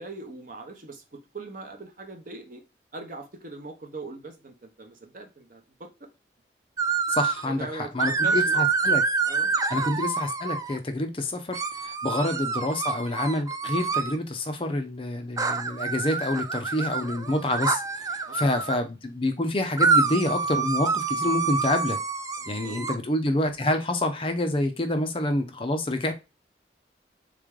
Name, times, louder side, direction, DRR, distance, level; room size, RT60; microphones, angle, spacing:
voice 1, 0.0-2.6 2.9-6.1 7.4-8.7 9.3-9.6 10.9-11.1 18.2-18.5 22.4-23.0, right 3 dB, 50° right, 0.9 m, -41 dB
sound 1, 6.8-7.5 8.0-10.8 11.5-14.2 15.4-18.8 19.8-22.9, right 4 dB, 20° right, 0.3 m, -27 dB
voice 2, 7.1-9.0 9.7-22.0 22.5-26.1, left 1 dB, 30° left, 0.6 m, -27 dB
3.7 x 3.3 x 3.6 m
head